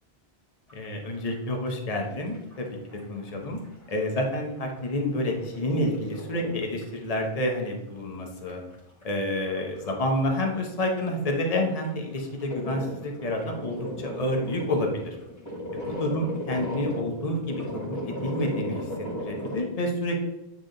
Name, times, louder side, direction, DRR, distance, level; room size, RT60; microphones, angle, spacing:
voice 1, 0.7-2.7 3.1-3.6 3.9-8.6 9.0-15.1 15.9-18.9 19.2-20.2, left 1 dB, 35° left, 2 dB, 1.1 m, -29 dB
sound 1, 0.7-1.8 2.1-3.9 4.3-7.6 7.9-8.0 8.5-8.7 9.0-9.1 9.4-9.9 10.2-19.6, equal, 15° left, 2.1 m, -37 dB
8.7 x 3.5 x 3.8 m, 0.92 s
omnidirectional pair, 1.1 m